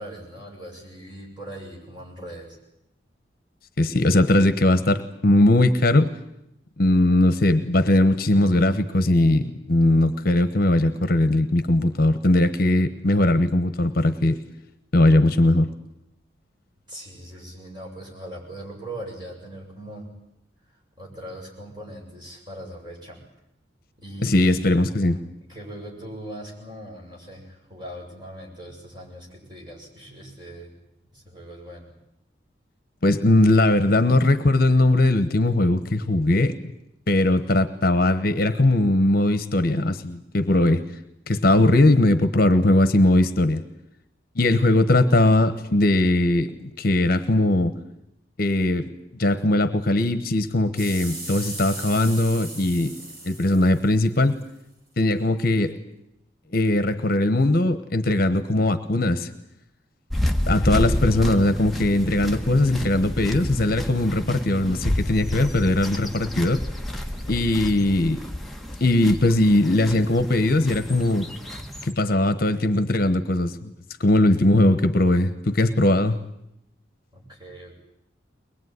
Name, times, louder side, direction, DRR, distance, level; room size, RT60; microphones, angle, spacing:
voice 1, 0.0-2.6 16.9-20.2 20.7-23.2 24.0-24.8 25.4-30.7 31.1-31.9 66.9-67.6 77.1-77.8, right 1 dB, 25° right, -2 dB, 7.3 m, -40 dB
voice 2, 3.8-6.1 6.8-14.4 14.9-15.7 24.2-25.2 33.0-36.5 37.1-40.8 41.3-43.6 44.4-47.7 48.4-48.9 49.2-52.9 53.3-54.4 55.0-55.7 56.5-59.3 60.5-66.6 67.3-68.2 68.8-71.3 71.8-73.7 74.0-76.2, left 1 dB, 50° left, 11 dB, 1.1 m, -20 dB
sound 1, 50.8-54.4 55.1-55.2, right 2 dB, 55° right, 6.8 m, -37 dB
sound 2, 60.1-71.9, left 1 dB, ahead, 1.2 m, -29 dB
22.5 x 21.0 x 9.6 m, 0.81 s
head